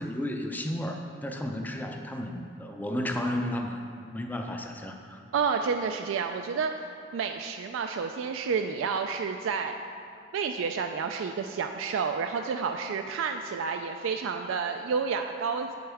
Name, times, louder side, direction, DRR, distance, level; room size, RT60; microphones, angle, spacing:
voice 1, 0.0-5.2, left 1 dB, 10° left, 4 dB, 0.4 m, -33 dB
voice 2, 5.3-9.7 10.3-15.7, right 5 dB, 90° right, 5 dB, 0.3 m, -30 dB
7.9 x 7.9 x 3.4 m, 2.5 s
head